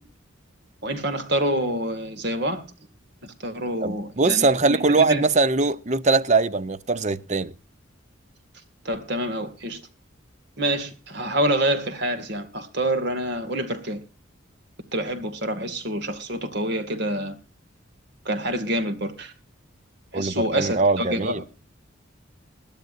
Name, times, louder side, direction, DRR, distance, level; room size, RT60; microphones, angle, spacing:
voice 1, 0.8-2.6 3.2-5.2 8.8-9.8 10.6-14.0 14.9-17.4 18.3-19.3 20.1-21.5, right 1 dB, 55° right, 2.3 m, -27 dB
voice 2, 3.8-7.5 20.1-21.4, right 3 dB, 35° right, 0.7 m, -21 dB
21.0 x 12.5 x 2.6 m
head